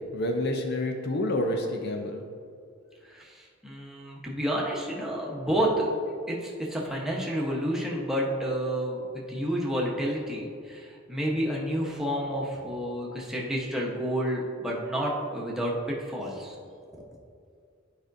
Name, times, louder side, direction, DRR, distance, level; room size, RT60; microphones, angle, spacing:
voice 1, 0.1-2.2, left 1 dB, 55° left, 3 dB, 0.6 m, -28 dB
voice 2, 3.0-15.7 16.1-16.5 16.9-17.0, equal, ahead, -4 dB, 1.0 m, -30 dB
11.5 x 5.0 x 2.6 m, 2.3 s
head